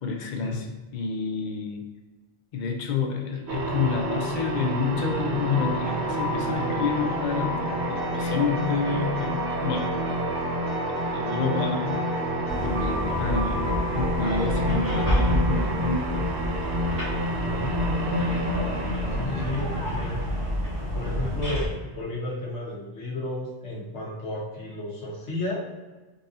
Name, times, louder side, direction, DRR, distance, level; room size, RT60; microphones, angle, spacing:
voice 1, 0.0-1.9 2.5-7.6 7.9-10.0 11.1-12.1 12.6-16.3 19.3-19.7, left 5 dB, 60° left, 2 dB, 0.5 m, -29 dB
sound 1, 3.5-21.8, right 1 dB, 70° right, 0.8 m, -29 dB
sound 2, 5.6-15.9, left 2 dB, 45° right, 1.3 m, -34 dB
sound 3, 12.5-21.7, equal, 15° right, 1.3 m, -29 dB
voice 2, 17.4-17.7 19.2-20.2 20.9-21.7 21.9-25.6, left 2 dB, 80° left, -4 dB, 1.4 m, -33 dB
4.0 x 2.6 x 2.6 m, 1.2 s
omnidirectional pair, 1.2 m